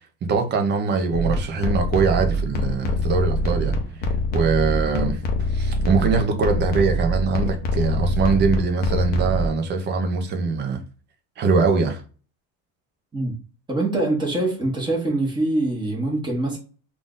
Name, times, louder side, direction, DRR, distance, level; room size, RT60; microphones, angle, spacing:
voice 1, 0.2-10.8 11.4-12.0, right 4 dB, 25° right, 0.6 m, -23 dB
sound 1, 1.1-9.5, equal, 25° left, 0.5 m, -24 dB
voice 2, 13.7-16.6, right 2 dB, 10° right, 1.2 m, -24 dB
3.7 x 2.5 x 3.7 m
cardioid pair, 165°, 39 cm